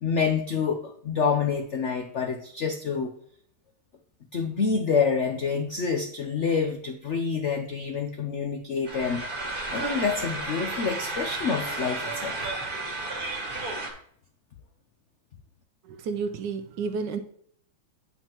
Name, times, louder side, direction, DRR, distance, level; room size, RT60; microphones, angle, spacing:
voice 1, 0.0-3.1 4.3-9.2 9.7-12.4, left 5 dB, 80° left, 5 dB, 0.6 m, -27 dB
sound 1, 8.9-13.9, right 2 dB, 30° right, 1.3 m, -32 dB
voice 2, 15.9-17.2, right 5 dB, 70° right, 10 dB, 1.2 m, -31 dB
9.1 x 5.4 x 3.0 m, 0.64 s
omnidirectional pair, 2.2 m